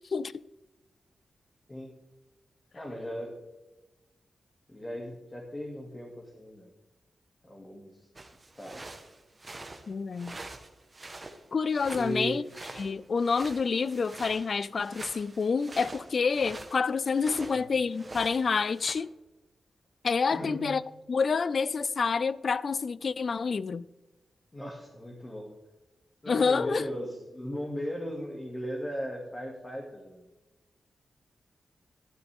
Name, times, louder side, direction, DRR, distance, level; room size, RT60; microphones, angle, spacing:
voice 1, 2.7-3.3 4.7-6.7 7.4-8.0 8.6-9.0 11.9-12.4 17.4-17.7 20.3-20.7 24.5-25.5 26.2-30.3, equal, 20° left, 2.3 m, -37 dB
sound 1, 8.2-17.6 17.9-18.9, right 2 dB, 30° right, 1.3 m, -45 dB
voice 2, 9.9-10.4 11.5-12.4 12.8-19.1 20.0-20.8 21.1-23.9 26.3-26.8, left 5 dB, 55° left, 0.4 m, -28 dB
12.5 x 12.0 x 3.6 m
wide cardioid pair, 100°, 0 cm